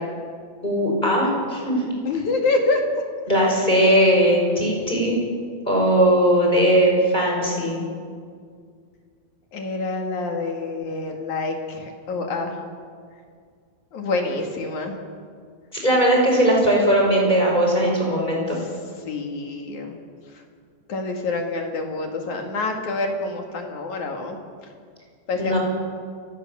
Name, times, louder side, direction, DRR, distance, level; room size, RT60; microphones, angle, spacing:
voice 1, 0.6-1.8 3.3-5.2 5.7-7.8 15.7-18.6 25.4-25.6, equal, 10° left, -1 dB, 5.5 m, -19 dB
voice 2, 2.0-2.8 9.5-12.5 13.9-15.0 18.6-18.7 19.1-19.9 20.9-24.4 25.3-25.6, left 3 dB, 50° left, 3 dB, 3.2 m, -26 dB
29.5 x 17.5 x 7.1 m, 2.1 s
omnidirectional pair, 5.2 m